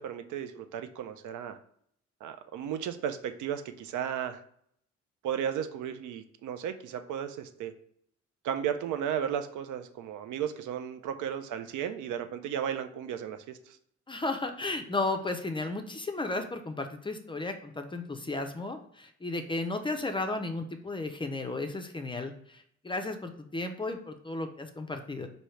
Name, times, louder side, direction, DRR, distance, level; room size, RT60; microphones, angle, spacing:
voice 1, 0.0-1.6 2.2-4.4 5.2-7.7 8.4-13.8, right 9 dB, 80° right, 9 dB, 0.5 m, -34 dB
voice 2, 14.1-25.3, left 2 dB, 15° left, 6 dB, 0.4 m, -34 dB
4.5 x 2.7 x 3.1 m, 0.66 s
cardioid pair, 90°, 30 cm